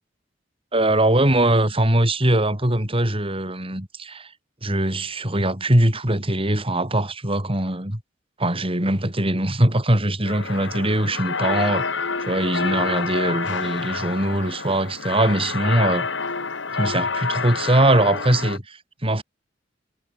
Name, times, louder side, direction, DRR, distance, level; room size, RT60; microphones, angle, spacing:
voice 1, 0.7-4.3 4.6-8.0 8.4-11.9 12.2-16.1 16.7-19.2, right 1 dB, 30° right, 4.7 m, -21 dB
sound 1, 10.2-18.6, left 4 dB, 75° left, 2.2 m, -28 dB
head